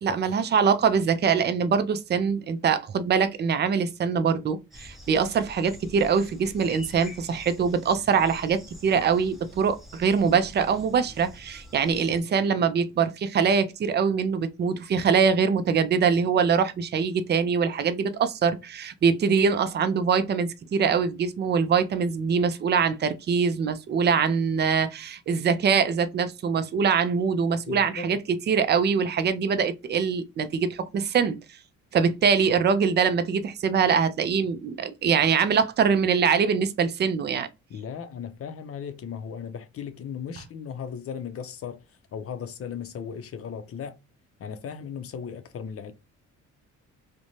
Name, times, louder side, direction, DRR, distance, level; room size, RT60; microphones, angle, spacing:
voice 1, 0.0-28.2 28.5-31.4 31.9-37.5, right 6 dB, 35° right, 0.4 m, -23 dB
sound 1, 4.7-12.2, left 1 dB, ahead, 0.8 m, -46 dB
voice 2, 27.7-28.2 37.7-44.0 44.4-45.9, left 7 dB, 50° left, 0.5 m, -37 dB
2.6 x 2.1 x 2.9 m
cardioid pair, 90°, 30 cm